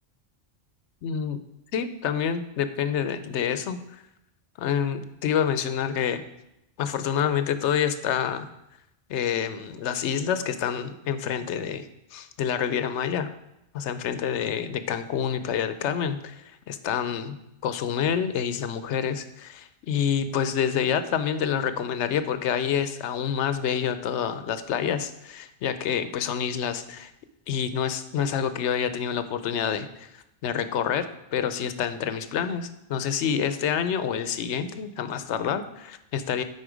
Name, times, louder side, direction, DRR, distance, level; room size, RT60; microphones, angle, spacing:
voice 1, 1.0-1.4 1.7-3.8 4.6-6.2 6.8-8.5 9.1-13.3 13.7-17.4 17.6-27.1 27.5-36.4, left 8 dB, 85° left, 11 dB, 0.9 m, -27 dB
9.5 x 4.4 x 5.0 m, 0.86 s
omnidirectional pair, 1.2 m